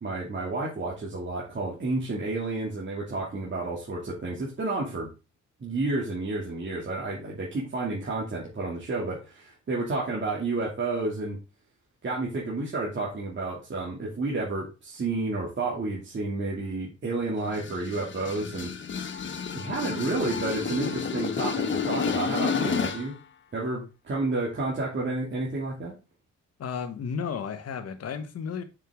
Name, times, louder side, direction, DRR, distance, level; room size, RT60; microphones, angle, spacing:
voice 1, 0.0-5.1 5.6-11.4 12.0-18.7 19.5-23.1 23.5-26.0, right 2 dB, 40° right, 2.8 m, -30 dB
sound 1, 17.4-23.2, left 6 dB, 40° left, 1.1 m, -30 dB
voice 2, 26.6-28.6, left 6 dB, 55° left, 1.3 m, -33 dB
6.5 x 6.5 x 3.7 m
cardioid pair, 90°, 30 cm